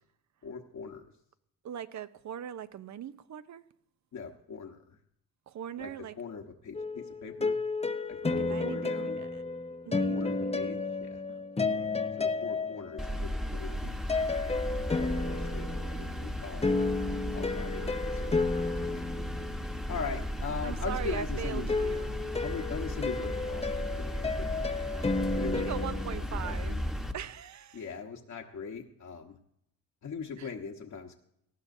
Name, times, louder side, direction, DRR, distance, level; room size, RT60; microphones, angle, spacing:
voice 1, 0.4-1.1 4.1-5.0 5.8-5.9 6.2-7.6 8.1-9.2 10.1-11.2 12.2-14.2 15.0-16.7 17.3-18.9 19.9-21.7 22.4-24.5 25.3-25.9 26.2-26.8 27.7-29.4 30.0-31.1, left 5 dB, 55° left, 1.3 m, -41 dB
voice 2, 1.6-3.6 5.5-6.2 8.2-9.4 9.9-10.6 11.3-11.4 20.6-22.1 25.5-26.8 27.1-27.8 30.4-30.5, right 9 dB, 55° right, 0.8 m, -40 dB
sound 1, 6.7-13.3 14.1-20.0 21.7-26.2, left 3 dB, 20° left, 0.8 m, -32 dB
sound 2, 13.0-27.1, equal, ahead, 1.2 m, -35 dB
19.0 x 13.5 x 2.8 m
cardioid pair, 80°, 35 cm